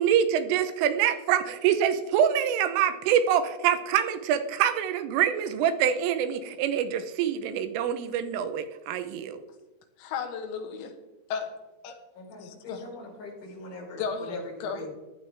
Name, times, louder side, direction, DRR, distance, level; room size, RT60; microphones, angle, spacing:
voice 1, 0.0-9.4, right 9 dB, 80° right, 10 dB, 3.3 m, -25 dB
voice 2, 10.0-11.0 11.3-11.5 11.8-12.0 12.4-12.9 14.0-14.9, left 6 dB, 90° left, 5 dB, 4.3 m, -34 dB
voice 3, 12.1-14.9, left 1 dB, 40° left, -5 dB, 6.1 m, -42 dB
15.0 x 10.5 x 3.4 m, 1.1 s
omnidirectional pair, 6.0 m